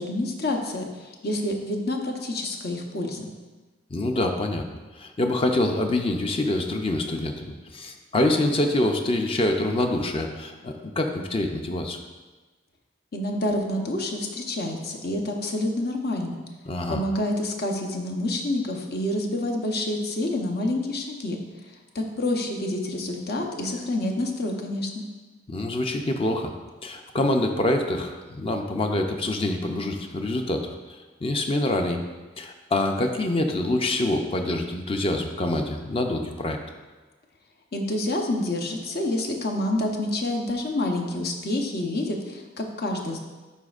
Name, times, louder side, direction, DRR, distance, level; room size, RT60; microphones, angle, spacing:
voice 1, 0.0-3.3 13.1-16.4 16.9-21.4 21.9-25.0 37.7-43.2, left 1 dB, 55° left, 2 dB, 0.8 m, -28 dB
voice 2, 3.9-4.7 5.0-12.0 16.7-17.0 25.5-26.5 26.8-30.7 31.2-32.0 32.4-36.6, left 1 dB, 30° left, 4 dB, 0.5 m, -25 dB
11.0 x 4.2 x 2.4 m, 1.2 s
head